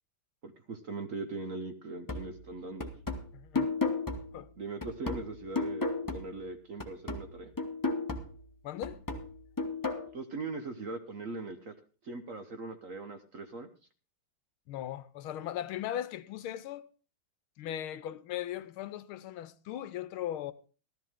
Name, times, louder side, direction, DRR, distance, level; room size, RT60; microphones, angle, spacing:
voice 1, 0.4-2.9 4.6-5.8 6.1-7.5 10.1-11.7 12.0-13.7, right 3 dB, 50° right, 1.1 m, -40 dB
sound 1, 2.1-6.5 6.8-10.1, left 3 dB, 15° left, 0.8 m, -35 dB
voice 2, 3.3-3.7 4.3-4.5 8.6-9.0 14.7-16.8 17.6-20.5, left 11 dB, 80° left, 1.6 m, -38 dB
14.0 x 13.5 x 3.6 m
omnidirectional pair, 2.3 m